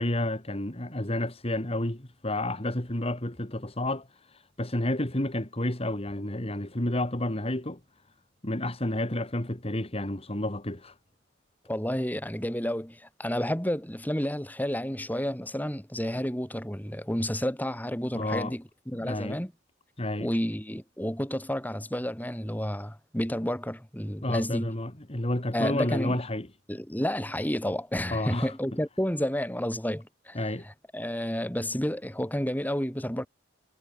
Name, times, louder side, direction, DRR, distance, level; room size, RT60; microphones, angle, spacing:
voice 1, 0.0-7.8 8.4-10.9 18.1-18.5 19.0-19.4 20.0-20.3 24.2-26.5 28.1-28.5 30.3-30.6, left 1 dB, 30° left, 2.6 m, -30 dB
voice 2, 11.7-19.5 20.2-24.7 25.5-26.2 26.7-33.3, equal, 10° left, 5.3 m, -31 dB
head